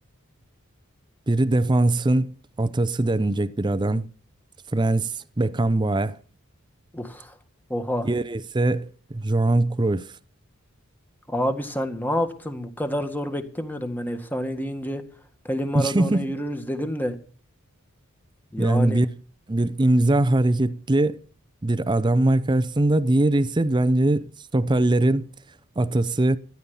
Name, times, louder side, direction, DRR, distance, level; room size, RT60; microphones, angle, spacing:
voice 1, 1.3-4.1 4.7-6.2 8.0-10.1 15.7-16.3 18.6-19.1 19.5-21.2 21.6-24.3 24.5-25.3 25.8-26.4, right 2 dB, 20° right, 0.6 m, -21 dB
voice 2, 6.9-7.3 7.7-8.1 11.3-15.0 15.4-17.1 18.5-19.0, equal, 10° left, 1.7 m, -28 dB
14.0 x 10.5 x 7.1 m
head